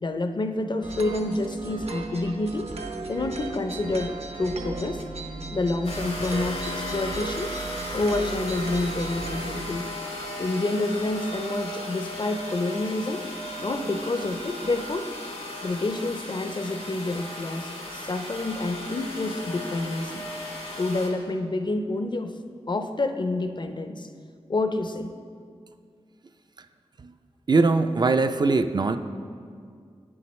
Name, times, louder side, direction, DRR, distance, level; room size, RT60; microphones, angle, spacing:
voice 1, 0.0-2.7 3.1-5.0 5.5-7.5 7.9-9.9 10.4-13.2 13.6-15.1 15.6-20.2 20.8-22.4 22.7-24.1 24.5-25.1, left 2 dB, 45° left, 8 dB, 0.5 m, -28 dB
sound 1, 0.8-9.7, right 3 dB, 70° right, 0.7 m, -36 dB
sound 2, 5.8-21.1, left 1 dB, 80° left, 1.8 m, -36 dB
voice 2, 27.5-29.0, right 3 dB, 40° right, 9 dB, 0.3 m, -21 dB
8.7 x 7.2 x 3.1 m, 2.1 s
wide cardioid pair, 60°, 11 cm